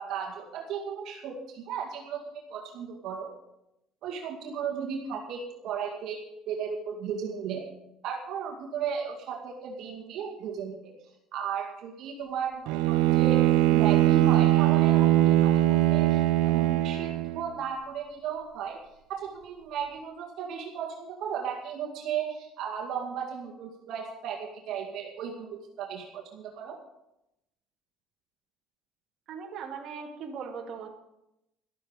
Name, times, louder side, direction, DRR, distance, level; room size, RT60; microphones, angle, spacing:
voice 1, 0.0-3.3 4.0-7.6 8.0-10.9 11.3-13.4 13.7-18.8 19.1-26.8, right 7 dB, 60° right, 0 dB, 2.2 m, -35 dB
Bowed string instrument, 12.7-17.5, right 14 dB, 85° right, 0.8 m, -21 dB
voice 2, 29.3-30.9, right 6 dB, 45° right, 0 dB, 2.4 m, -39 dB
13.5 x 12.5 x 5.1 m, 0.86 s
cardioid pair, 140°, 0 cm